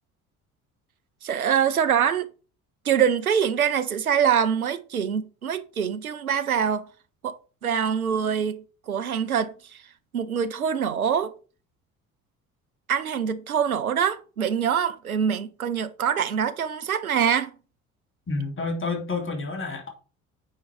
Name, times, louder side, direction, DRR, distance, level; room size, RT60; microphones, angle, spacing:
voice 1, 1.2-2.3 2.8-6.9 7.2-7.4 7.6-9.8 10.1-11.3 12.9-17.5, right 8 dB, 85° right, 0.6 m, -24 dB
voice 2, 18.3-19.9, left 3 dB, 30° left, 2.7 m, -29 dB
9.0 x 4.5 x 4.8 m
figure-of-eight pair, 50°, 42 cm